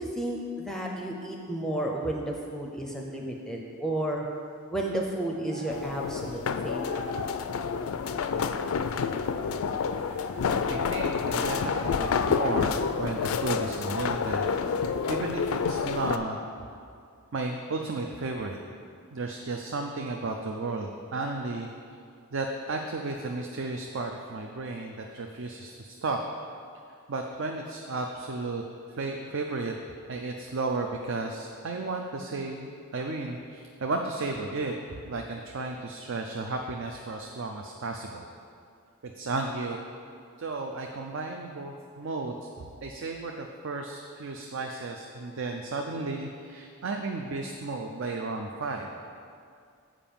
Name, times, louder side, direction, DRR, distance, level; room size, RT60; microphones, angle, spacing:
voice 1, 0.0-4.3 4.7-7.0, right 1 dB, ahead, 0 dB, 0.6 m, -32 dB
sound 1, 5.5-6.0 6.8-7.4 9.9-10.4 11.4-12.1, right 1 dB, 90° right, 1.4 m, -41 dB
sound 2, 5.7-16.2, left 6 dB, 70° left, 0.4 m, -29 dB
voice 2, 10.7-16.4 17.3-18.6 19.1-21.7 22.3-26.2 27.1-28.6 28.9-29.7 30.1-38.2 39.0-39.8 40.4-48.9, right 3 dB, 55° right, 2 dB, 0.5 m, -34 dB
7.5 x 4.9 x 7.0 m, 2.3 s
head